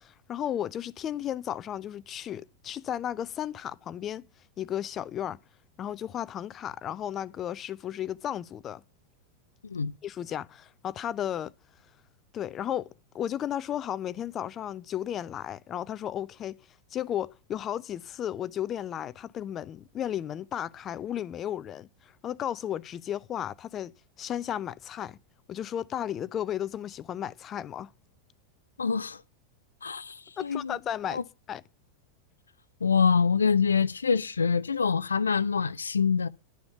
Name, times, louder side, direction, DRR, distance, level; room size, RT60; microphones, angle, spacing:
voice 1, 0.0-4.2 4.6-5.4 5.8-8.8 10.0-11.5 12.3-16.6 16.9-25.2 25.5-27.9 30.4-31.2 31.5-31.6, left 10 dB, 30° left, 0.5 m, -34 dB
voice 2, 28.8-29.2 29.8-30.8 31.1-31.2 32.8-36.3, left 6 dB, 75° left, 0.6 m, -25 dB
11.5 x 6.9 x 6.9 m
figure-of-eight pair, 90°, 0 cm